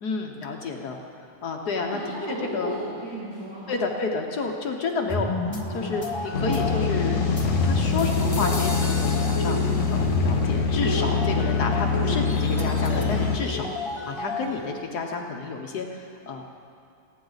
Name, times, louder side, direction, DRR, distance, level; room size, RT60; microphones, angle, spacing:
voice 1, 0.0-2.2 2.5-2.7 3.7-5.3 5.7-9.6 9.9-13.7 14.1-16.4, left 4 dB, 65° left, 2 dB, 1.5 m, -30 dB
voice 2, 1.8-3.8 10.8-11.2, right 1 dB, 60° right, -8 dB, 2.9 m, -34 dB
sound 1, 5.1-14.7, left 2 dB, 30° left, 0.5 m, -30 dB
sound 2, 6.3-13.4, left 5 dB, 85° left, 1.9 m, -24 dB
27.0 x 9.0 x 4.0 m, 2.4 s
omnidirectional pair, 1.9 m